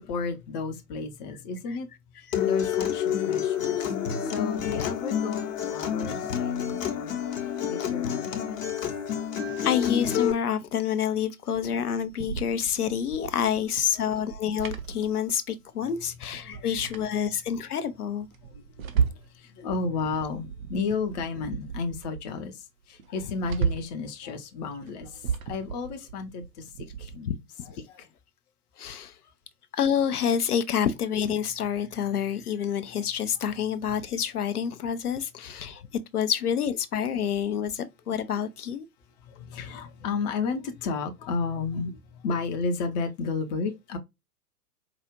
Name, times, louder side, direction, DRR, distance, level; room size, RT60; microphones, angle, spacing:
voice 1, 0.0-1.9 2.4-3.9 4.2-9.0 16.4-17.2 18.4-26.7 27.0-27.3 27.9-28.1 35.8-35.9 39.2-44.0, left 4 dB, 25° left, 0.7 m, -33 dB
voice 2, 2.3-2.7 4.6-4.9 9.6-18.3 23.1-23.4 27.3-27.4 27.7-27.8 28.8-29.2 29.7-35.8 36.1-38.9, left 8 dB, 70° left, 0.7 m, -28 dB
Acoustic guitar, 2.3-10.3, left 9 dB, 55° left, 1.0 m, -28 dB
sound 1, 11.9-15.6 15.9-16.0 16.3-17.6 18.1-19.4 19.7-22.3 22.6-22.7 23.0-24.0 24.7-27.2, right 7 dB, 60° right, 0.9 m, -34 dB
4.8 x 2.3 x 2.9 m
figure-of-eight pair, 105°, 47 cm